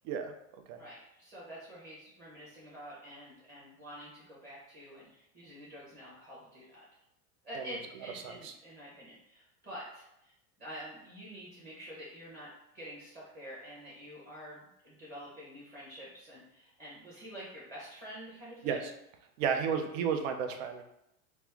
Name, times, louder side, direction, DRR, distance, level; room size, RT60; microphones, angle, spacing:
voice 1, 0.8-6.9 7.4-10.3 10.6-18.9 19.5-19.6, equal, 20° right, -7 dB, 0.9 m, -47 dB
voice 2, 19.4-20.8, right 7 dB, 65° right, 6 dB, 0.6 m, -32 dB
3.0 x 2.0 x 3.3 m, 0.81 s
supercardioid pair, 120°, 42 cm